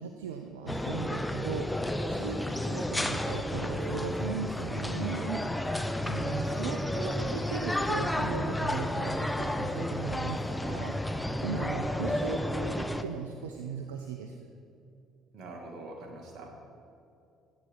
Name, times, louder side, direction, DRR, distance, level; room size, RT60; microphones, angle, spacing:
voice 1, 0.0-1.8 2.1-5.4 6.1-11.0 11.4-14.5, right 6 dB, 80° right, 4 dB, 0.5 m, -38 dB
sound 1, 0.7-13.0, left 1 dB, 10° left, 0.7 m, -31 dB
Keyboard (musical), 3.7-6.9, right 1 dB, 65° left, 2.8 m, -45 dB
voice 2, 15.3-16.6, right 2 dB, 55° right, 2 dB, 1.8 m, -44 dB
15.0 x 8.5 x 3.7 m, 2.6 s
hypercardioid pair, 55°, 0 cm